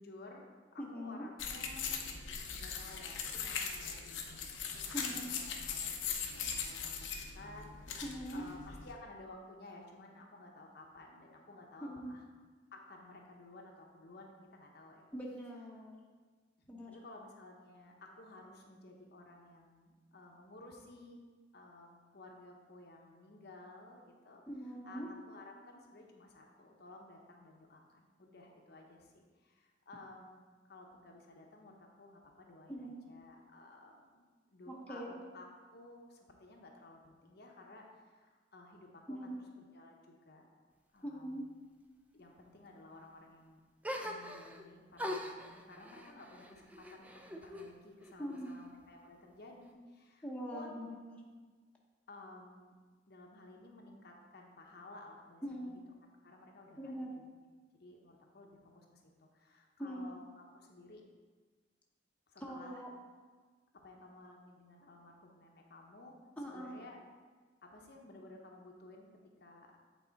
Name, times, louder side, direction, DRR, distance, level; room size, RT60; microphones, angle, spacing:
voice 1, 0.0-2.0 2.5-12.2 12.7-15.1 16.6-21.2 21.5-34.2 34.5-40.5 40.9-41.5 42.1-43.6 44.0-50.9 52.1-52.7 53.1-55.8 56.2-57.3 57.7-61.0 62.3-62.8 63.8-66.2 66.5-67.0 67.6-69.1 69.4-69.7, left 2 dB, 60° left, 1 dB, 0.9 m, -55 dB
voice 2, 0.8-1.3 4.9-5.3 8.0-8.4 11.8-12.1 15.1-15.9 16.7-16.9 24.5-25.1 32.7-33.0 34.7-35.2 39.1-39.4 41.0-41.4 48.2-48.5 50.2-51.2 55.4-55.8 56.8-57.1 59.8-60.1 62.4-62.9 66.4-66.8, equal, 10° left, -3 dB, 0.9 m, -42 dB
sound 1, 1.4-8.9, left 6 dB, 90° left, 0.8 m, -40 dB
sound 2, 43.8-44.6 45.0-47.7 48.0-48.9, left 1 dB, 10° right, 0.4 m, -43 dB
8.4 x 4.1 x 4.0 m, 1.4 s
head